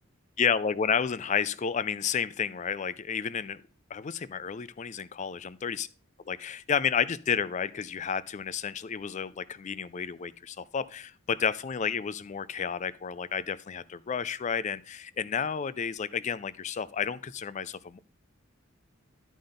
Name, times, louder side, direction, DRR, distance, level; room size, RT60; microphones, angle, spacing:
voice 1, 0.4-3.6 3.9-5.9 6.3-18.0, left 7 dB, 35° left, 17 dB, 0.4 m, -31 dB
11.5 x 5.1 x 3.8 m, 0.41 s
head